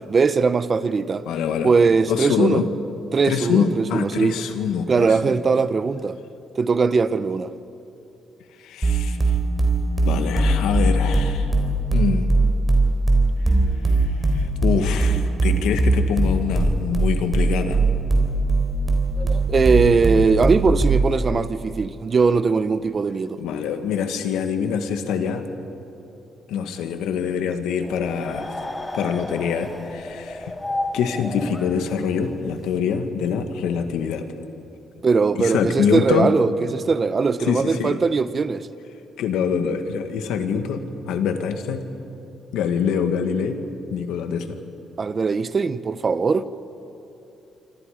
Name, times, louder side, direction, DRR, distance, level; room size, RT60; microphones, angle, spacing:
voice 1, 0.1-1.2 1.6-2.6 3.1-4.4 4.9-6.2 6.6-7.5 19.2-23.4 35.0-38.7 45.0-46.4, right 4 dB, 40° right, 0.9 m, -20 dB
voice 2, 1.3-1.7 2.1-2.7 3.2-5.2 8.6-9.3 10.0-11.5 11.9-12.4 13.9-17.8 23.4-25.5 26.5-28.5 28.9-30.5 30.9-34.3 35.4-36.3 37.5-38.1 39.2-41.8 42.5-43.6 43.9-44.6, left 7 dB, 90° left, 1.8 m, -25 dB
sound 1, 8.8-21.2, right 2 dB, 25° right, 3.6 m, -20 dB
sound 2, 27.8-32.7, left 1 dB, 15° left, 2.4 m, -32 dB
27.5 x 25.0 x 5.1 m
cardioid pair, 90°, 0 cm